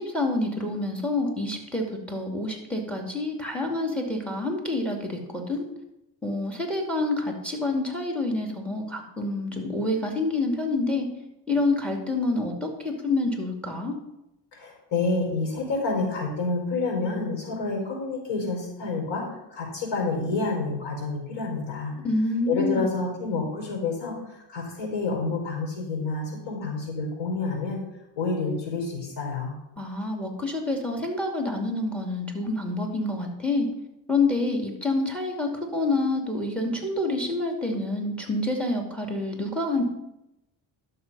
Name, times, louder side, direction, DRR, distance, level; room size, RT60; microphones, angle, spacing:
voice 1, 0.0-5.7 6.2-11.1 11.5-13.9 22.0-22.9 29.8-33.7 34.1-39.8, left 2 dB, 5° left, 2 dB, 2.5 m, -27 dB
voice 2, 14.5-19.2 19.5-22.0 22.5-27.8 28.2-29.6, left 3 dB, 70° left, -1 dB, 4.9 m, -28 dB
11.5 x 6.8 x 5.5 m, 0.90 s
cardioid pair, 110°, 44 cm